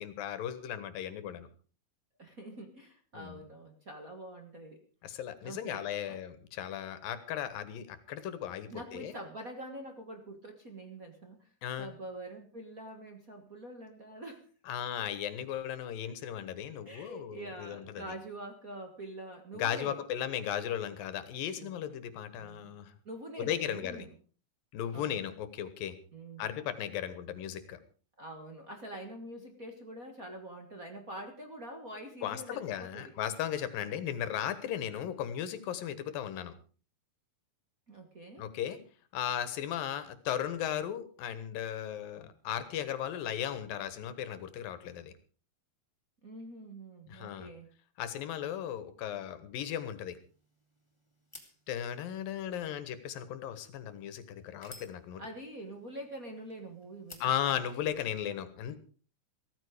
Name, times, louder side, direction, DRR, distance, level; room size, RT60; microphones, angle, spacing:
voice 1, 0.0-1.5 3.1-3.4 5.0-9.2 11.6-11.9 14.7-18.0 19.5-22.9 23.4-24.1 24.7-26.0 26.4-27.8 32.2-36.5 38.4-38.8 39.1-45.1 47.1-47.5 48.0-50.2 51.7-55.2 57.2-58.9, left 10 dB, 90° left, 13 dB, 3.1 m, -36 dB
voice 2, 2.2-4.8 5.4-6.2 8.7-11.5 11.8-14.4 16.8-20.0 21.6-21.8 22.4-22.8 23.0-24.1 24.9-25.2 26.1-26.5 28.2-33.1 33.8-34.1 37.9-38.5 46.2-47.7 55.2-57.2 57.5-57.6, right 1 dB, 35° right, 4 dB, 1.5 m, -45 dB
sound 1, 49.8-58.1, left 2 dB, 10° left, 2.1 m, -58 dB
16.0 x 14.0 x 5.0 m, 0.39 s
omnidirectional pair, 3.9 m